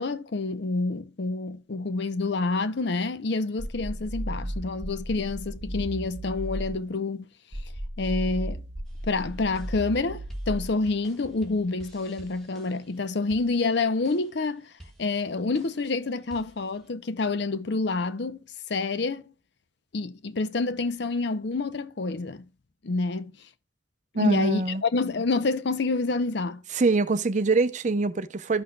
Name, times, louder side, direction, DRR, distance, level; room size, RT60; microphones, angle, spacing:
voice 1, 0.0-7.3 8.0-8.6 9.1-14.7 15.0-18.4 18.7-19.2 19.9-22.4 22.8-23.3 24.2-26.6, left 3 dB, 60° left, 0.6 m, -28 dB
sound 1, 3.6-6.8 7.5-10.8, right 1 dB, 30° left, 4.0 m, -35 dB
sound 2, 8.8-16.9, right 1 dB, ahead, 1.5 m, -53 dB
voice 2, 24.1-24.8 26.7-28.6, right 3 dB, 35° right, 0.6 m, -24 dB
14.0 x 5.7 x 2.2 m
head